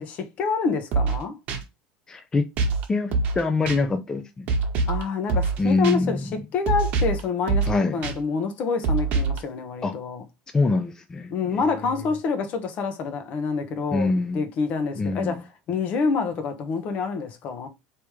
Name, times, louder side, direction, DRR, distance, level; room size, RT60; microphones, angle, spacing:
voice 1, 0.0-1.3 4.9-10.2 11.3-15.4 15.7-17.7, left 5 dB, 50° left, 1.0 m, -27 dB
sound 1, 0.9-1.2 1.5-1.6 2.6-2.8 3.1-3.4 3.7-3.8 4.5-5.0 5.3-5.6 5.8-5.9 6.7-7.2 7.5-7.7 8.0-8.1 8.8-9.4, right 4 dB, 55° right, 1.1 m, -23 dB
voice 2, 2.1-2.5 2.9-4.5 5.6-6.3 7.7-8.0 9.8-9.9 10.5-11.7 13.9-14.4 15.0-15.4, left 3 dB, 20° left, 0.5 m, -24 dB
3.5 x 3.0 x 4.7 m
supercardioid pair, 105°, 3 cm